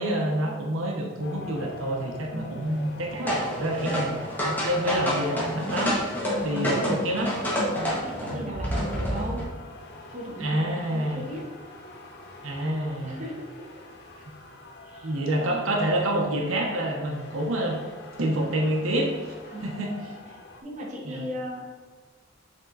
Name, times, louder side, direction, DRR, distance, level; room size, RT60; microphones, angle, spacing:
voice 1, 0.0-6.0 6.4-7.3 8.3-8.5 10.4-11.2 12.4-13.2 15.0-17.8 18.2-19.1 19.6-20.1 21.0-21.3, right 1 dB, 85° right, 0 dB, 1.0 m, -27 dB
sound 1, 1.2-20.6, left 2 dB, 55° left, 0.8 m, -44 dB
sound 2, 3.3-9.4, equal, 10° left, 1.2 m, -29 dB
voice 2, 6.6-7.0 7.8-9.4 10.1-11.4 13.0-13.7 14.8-15.7 19.5-19.8 20.6-21.6, right 1 dB, 35° right, -2 dB, 1.1 m, -37 dB
6.7 x 3.6 x 4.0 m, 1.4 s
head